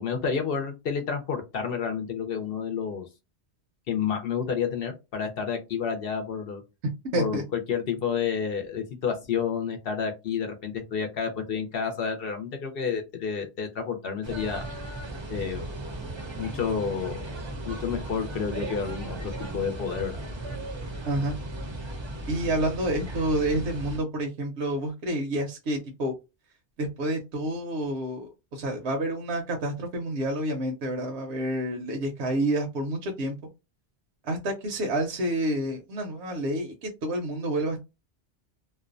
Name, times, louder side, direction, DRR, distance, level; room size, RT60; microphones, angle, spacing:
voice 1, 0.0-3.1 3.9-6.6 7.2-14.6 15.3-15.7 16.4-17.2 17.6-20.1, left 6 dB, 65° left, 5 dB, 0.7 m, -30 dB
voice 2, 7.1-7.4 21.1-21.3 22.3-26.1 26.8-33.3 34.2-37.8, right 1 dB, 75° right, 2 dB, 0.9 m, -29 dB
sound 1, 14.2-24.0, right 1 dB, 35° right, 0.5 m, -36 dB
2.5 x 2.1 x 2.4 m, 0.25 s
omnidirectional pair, 1.1 m